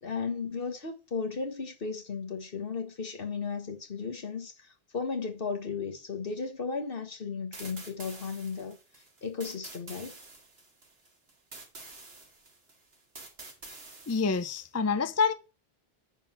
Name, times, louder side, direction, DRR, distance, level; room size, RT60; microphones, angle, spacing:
voice 1, 0.0-8.8 9.2-10.1, left 5 dB, 65° left, 1.5 m, -35 dB
sound 1, 7.5-14.7, right 3 dB, 80° right, 2.1 m, -48 dB
voice 2, 14.1-15.3, left 5 dB, 25° left, 0.4 m, -27 dB
9.8 x 4.0 x 5.8 m
omnidirectional pair, 1.0 m